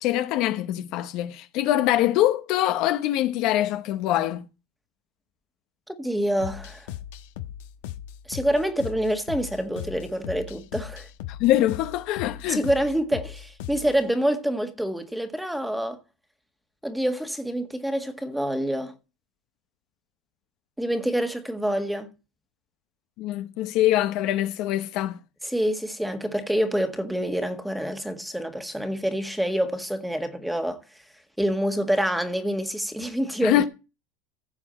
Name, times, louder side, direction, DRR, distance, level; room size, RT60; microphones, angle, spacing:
voice 1, 0.0-4.5 11.3-12.6 23.2-25.2 33.4-33.7, left 13 dB, 50° left, 1.0 m, -24 dB
voice 2, 5.9-6.9 8.3-11.1 12.5-16.0 16.8-18.9 20.8-22.1 25.4-30.8 31.4-33.7, equal, ahead, 1.6 m, -27 dB
sound 1, 6.4-14.0, left 12 dB, 75° left, 1.2 m, -38 dB
15.5 x 7.0 x 4.3 m
supercardioid pair, 140°, 0 cm